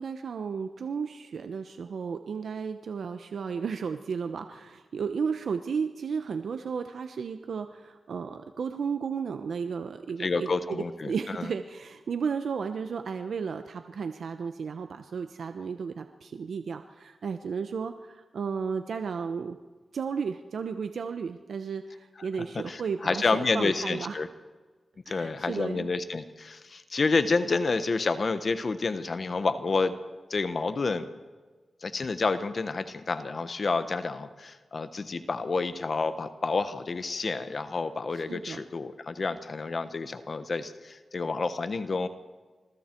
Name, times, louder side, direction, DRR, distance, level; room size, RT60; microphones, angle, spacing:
voice 1, 0.0-19.6 19.9-24.2 25.1-25.9 38.1-38.6, right 6 dB, 80° right, 8 dB, 0.9 m, -34 dB
voice 2, 10.2-11.5 22.2-22.3 22.7-24.3 25.1-29.9 30.3-31.1 31.8-42.1, left 4 dB, 55° left, 11 dB, 1.1 m, -29 dB
27.5 x 21.5 x 4.5 m, 1.4 s
cardioid pair, 75°, 0 cm